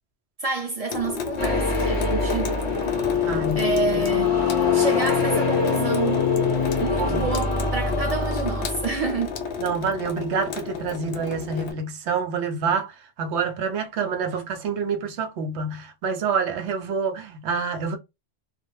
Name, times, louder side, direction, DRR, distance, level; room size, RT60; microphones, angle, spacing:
voice 1, 0.4-2.6 3.2-6.2 6.8-9.4, right 4 dB, 45° right, 0.5 m, -29 dB
Water tap faucet / Sink (filling or washing) / Drip, 0.9-11.7, left 6 dB, 75° left, 0.8 m, -32 dB
sound 1, 1.4-9.3, left 5 dB, 35° left, 0.5 m, -24 dB
voice 2, 3.2-3.7 4.0-4.1 4.5-4.8 6.9-7.3 9.6-18.0, right 5 dB, 85° right, 0.9 m, -27 dB
2.4 x 2.0 x 3.0 m
omnidirectional pair, 1.1 m